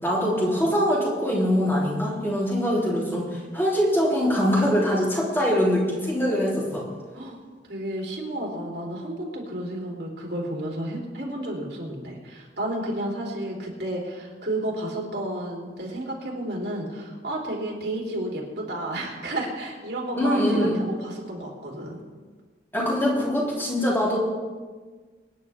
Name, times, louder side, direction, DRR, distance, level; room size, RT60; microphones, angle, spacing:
voice 1, 0.0-6.9 20.1-20.8 22.7-24.2, equal, 15° left, -5 dB, 3.6 m, -23 dB
voice 2, 7.7-22.0, right 1 dB, 70° right, -2 dB, 3.6 m, -32 dB
25.0 x 10.0 x 3.6 m, 1.4 s
head